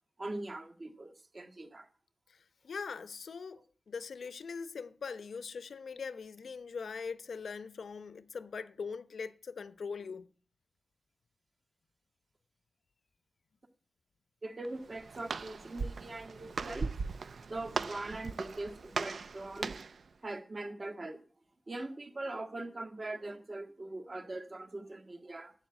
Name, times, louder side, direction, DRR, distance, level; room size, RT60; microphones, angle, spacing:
voice 1, 0.2-1.9 3.5-3.6 14.4-17.1 17.4-19.8 20.2-21.2 21.7-25.5, right 2 dB, 40° right, 1.8 m, -41 dB
voice 2, 2.6-3.6 3.9-10.3, left 5 dB, 85° left, 0.8 m, -41 dB
Walk footsteps, 14.6-20.0, right 4 dB, 75° right, 0.6 m, -39 dB
11.5 x 7.2 x 9.0 m
wide cardioid pair, 90°, 0 cm